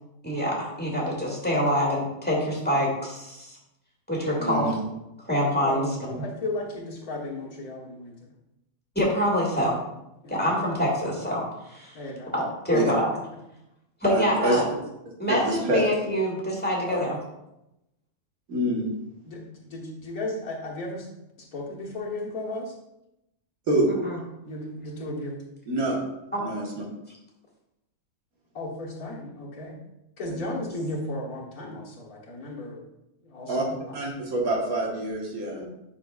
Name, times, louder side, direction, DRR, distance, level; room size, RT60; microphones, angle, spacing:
voice 1, 0.2-3.6 4.1-4.7 5.3-6.2 9.0-9.8 10.3-12.0 12.3-13.1 14.0-14.7 15.2-17.2 24.0-24.2 26.3-26.4 30.4-30.5, equal, 5° left, -3 dB, 1.9 m, -25 dB
voice 2, 4.4-4.8 12.7-12.8 14.1-14.6 15.3-15.8 16.9-17.0 18.5-18.9 23.7-23.9 25.7-26.0 26.4-26.7 30.3-30.4 33.5-33.7 33.9-35.6, right 1 dB, 70° right, -1 dB, 1.9 m, -26 dB
voice 3, 5.6-8.1 10.2-10.3 11.9-12.3 19.3-21.1 21.4-22.7 24.4-25.4 28.5-29.8 30.2-32.8 33.2-34.0 35.6-35.7, left 2 dB, 75° left, -3 dB, 1.9 m, -35 dB
9.2 x 6.0 x 2.4 m, 0.88 s
omnidirectional pair, 1.5 m